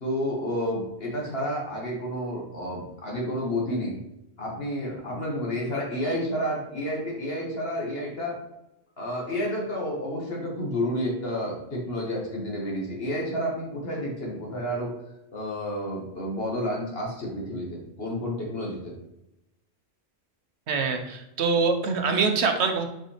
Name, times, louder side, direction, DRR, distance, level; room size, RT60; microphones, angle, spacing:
voice 1, 0.0-4.0 4.4-8.4 9.0-14.9 15.3-18.9, equal, 60° left, -2 dB, 1.9 m, -30 dB
voice 2, 20.7-22.8, right 4 dB, 75° right, 6 dB, 1.1 m, -24 dB
6.3 x 5.2 x 3.3 m, 0.88 s
omnidirectional pair, 1.1 m